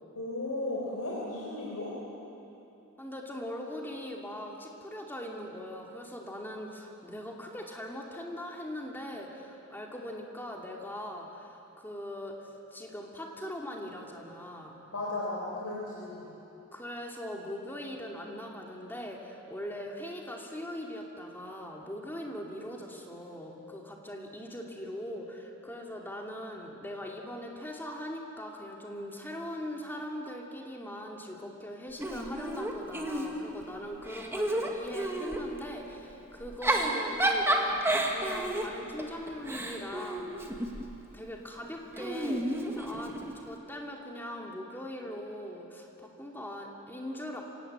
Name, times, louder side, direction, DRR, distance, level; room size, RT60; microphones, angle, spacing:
voice 1, 0.1-1.9 14.9-16.2, left 2 dB, 85° left, -5 dB, 4.4 m, -35 dB
voice 2, 3.0-12.4 12.7-14.8 16.7-40.3 41.1-47.4, equal, 10° left, 0 dB, 2.6 m, -41 dB
Giggle / Chuckle chortle, 32.0-33.6 34.0-35.5 36.4-40.9 42.0-43.4, right 1 dB, 10° right, 1.8 m, -31 dB
25.5 x 18.5 x 7.9 m, 2.8 s
head